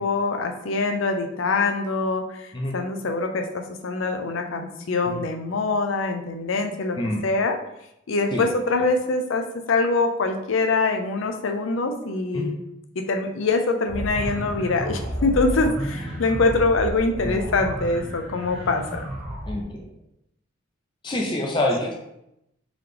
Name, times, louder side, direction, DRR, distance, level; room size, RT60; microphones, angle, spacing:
voice 1, 0.0-7.0 7.2-7.6 8.1-12.6 13.0-19.1, left 3 dB, 70° left, 5 dB, 0.5 m, -24 dB
sound 1, 13.9-19.6, equal, 5° right, 1.0 m, -31 dB
voice 2, 19.5-19.8 21.0-21.9, left 1 dB, 20° left, 0 dB, 0.5 m, -26 dB
3.9 x 2.9 x 3.3 m, 0.82 s
head